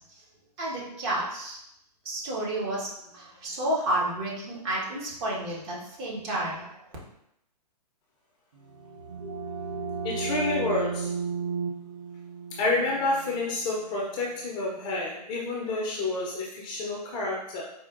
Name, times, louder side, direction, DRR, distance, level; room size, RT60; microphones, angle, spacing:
voice 1, 0.6-1.6 2.0-6.7, right 1 dB, 40° right, -4 dB, 1.1 m, -31 dB
sound 1, 8.6-14.2, right 5 dB, 70° right, 0.6 m, -34 dB
voice 2, 10.0-11.1 12.5-17.6, left 2 dB, 20° left, -3 dB, 0.5 m, -29 dB
4.3 x 2.4 x 2.4 m, 0.78 s
hypercardioid pair, 125°, 21 cm